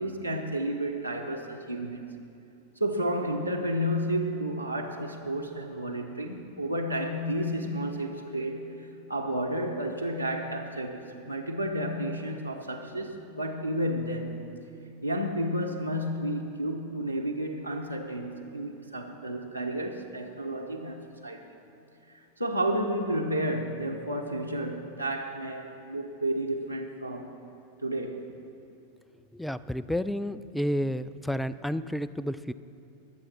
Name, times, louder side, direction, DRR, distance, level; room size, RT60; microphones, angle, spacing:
voice 1, 0.0-2.1 2.8-8.7 9.1-14.4 15.0-21.4 22.1-27.3 27.8-28.3, right 1 dB, 90° left, 3 dB, 0.8 m, -31 dB
voice 2, 29.3-32.5, equal, ahead, 15 dB, 0.3 m, -31 dB
21.0 x 7.7 x 4.3 m, 2.7 s
figure-of-eight pair, 90°, 0 cm